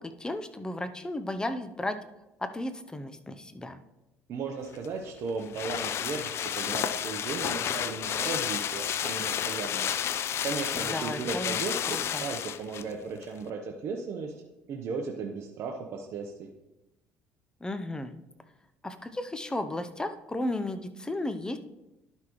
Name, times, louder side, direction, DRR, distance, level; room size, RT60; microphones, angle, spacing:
voice 1, 0.0-2.0 2.4-3.8 10.9-11.6 11.9-12.2 17.6-18.1 18.8-21.6, left 1 dB, 15° left, 10 dB, 0.7 m, -34 dB
voice 2, 4.3-9.9 10.4-14.3 14.7-16.5, right 4 dB, 55° right, 2 dB, 0.9 m, -36 dB
sound 1, 4.7-12.9 13.2-13.3, left 9 dB, 50° left, 0.4 m, -31 dB
11.5 x 5.8 x 3.1 m, 0.95 s
supercardioid pair, 90°, 5 cm